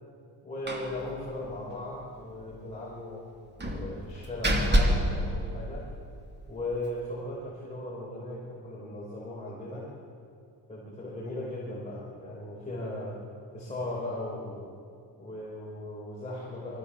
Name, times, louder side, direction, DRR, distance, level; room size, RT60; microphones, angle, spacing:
voice 1, 0.4-3.2 3.7-5.9 6.5-9.9 10.7-13.2 13.5-14.7 15.2-16.8, left 1 dB, 15° left, -6 dB, 5.3 m, -37 dB
Slam, 0.7-1.0 1.3-1.4 1.7-1.8 3.6-6.2, equal, 25° right, 2.5 m, -27 dB
24.5 x 15.5 x 7.3 m, 2.4 s
cardioid pair, 135°, 44 cm